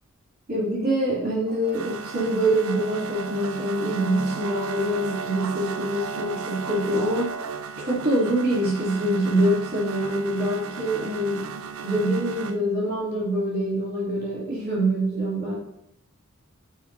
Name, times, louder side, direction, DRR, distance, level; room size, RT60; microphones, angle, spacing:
voice 1, 0.5-7.5 7.8-11.4 11.8-15.6, right 1 dB, 45° right, -6 dB, 2.9 m, -25 dB
sound 1, 1.5-12.6, right 5 dB, 90° right, 0.5 m, -35 dB
10.5 x 6.5 x 2.7 m, 0.80 s
head